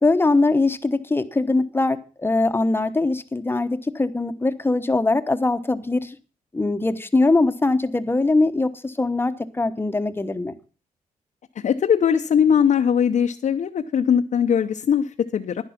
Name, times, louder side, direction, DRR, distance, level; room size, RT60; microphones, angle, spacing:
voice 1, 0.0-6.2 6.5-10.5, left 2 dB, 15° left, 11 dB, 1.1 m, -22 dB
voice 2, 11.6-15.6, left 8 dB, 60° left, 4 dB, 0.8 m, -20 dB
11.0 x 10.5 x 5.8 m, 0.36 s
cardioid pair, 110°, 14 cm